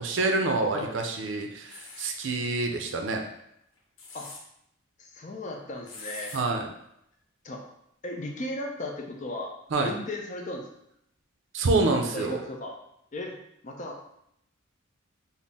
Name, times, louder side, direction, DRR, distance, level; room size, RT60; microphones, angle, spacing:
voice 1, 0.0-3.2 6.3-6.7 9.7-9.9 11.5-12.4, right 3 dB, 65° right, 3 dB, 0.5 m, -27 dB
sound 1, 1.6-2.2 3.8-4.4 5.9-6.4, left 3 dB, 80° left, 0.7 m, -43 dB
voice 2, 5.0-6.4 7.4-7.6 8.0-9.5 9.8-10.7 12.1-12.8 13.1-13.4 13.6-14.0, left 1 dB, 35° left, 1 dB, 0.5 m, -36 dB
4.1 x 2.0 x 3.4 m, 0.76 s
head